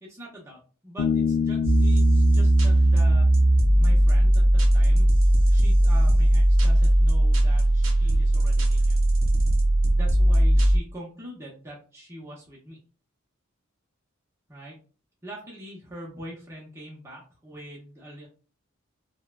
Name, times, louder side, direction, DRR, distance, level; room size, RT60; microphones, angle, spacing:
voice 1, 0.0-3.3 3.7-5.1 5.3-9.0 9.9-12.8 14.5-14.8 15.2-18.3, equal, 15° right, -5 dB, 0.7 m, -43 dB
Bass guitar, 1.0-4.5, left 6 dB, 80° left, 0.4 m, -29 dB
sound 1, 1.6-10.8, right 1 dB, 70° right, 0.5 m, -19 dB
3.0 x 2.1 x 2.2 m, 0.36 s
head